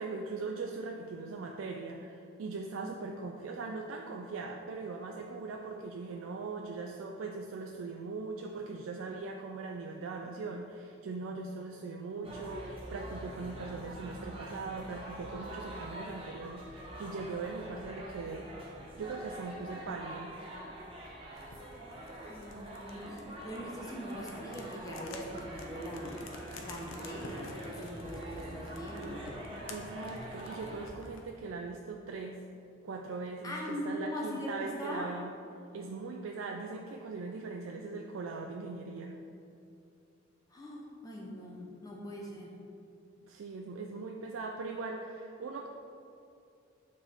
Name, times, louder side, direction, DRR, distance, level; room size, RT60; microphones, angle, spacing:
voice 1, 0.0-18.5 19.0-20.4 29.7-32.4 32.8-35.3 35.7-39.2 43.2-45.7, right 3 dB, 85° right, 2 dB, 0.4 m, -40 dB
sound 1, 12.2-30.9, right 1 dB, 30° right, 1.0 m, -45 dB
sound 2, 21.4-31.4, left 2 dB, 85° left, 0.6 m, -51 dB
voice 2, 22.1-26.2 26.6-29.3 33.4-35.1 40.5-42.5, equal, 20° left, -3 dB, 0.6 m, -41 dB
6.8 x 3.6 x 4.2 m, 2.6 s
head